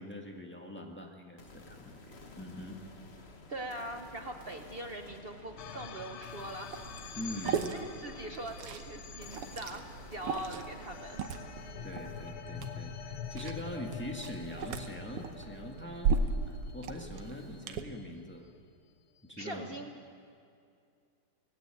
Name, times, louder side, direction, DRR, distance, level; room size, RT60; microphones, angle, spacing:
voice 1, 0.0-2.8 7.1-7.7 11.8-16.2 16.5-18.5 19.3-19.7, left 1 dB, 5° left, 1 dB, 1.6 m, -43 dB
sound 1, 1.4-15.3, left 3 dB, 35° left, 1.3 m, -53 dB
voice 2, 3.5-6.8 7.4-11.2 11.7-11.9 19.4-19.9, right 1 dB, 55° right, 4 dB, 0.6 m, -42 dB
sound 2, 5.6-18.0, left 8 dB, 70° left, 1.7 m, -47 dB
Liquid, 6.7-17.8, right 5 dB, 85° right, 2.0 m, -37 dB
18.0 x 16.5 x 9.0 m, 2.4 s
omnidirectional pair, 2.4 m